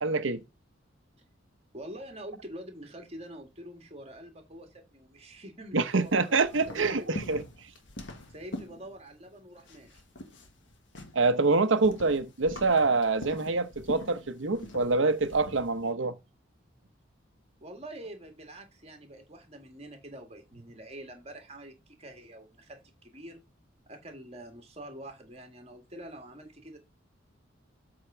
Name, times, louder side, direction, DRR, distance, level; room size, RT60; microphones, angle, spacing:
voice 1, 0.0-0.4 5.7-7.4 11.1-16.2, right 3 dB, 80° right, 1.0 m, -26 dB
voice 2, 1.7-6.3 6.7-7.1 8.3-10.0 17.6-23.4 23.9-26.8, right 1 dB, 35° right, 2.0 m, -45 dB
sound 1, 5.9-9.3 9.6-15.9, left 1 dB, 70° left, 1.5 m, -44 dB
8.0 x 3.9 x 5.0 m
head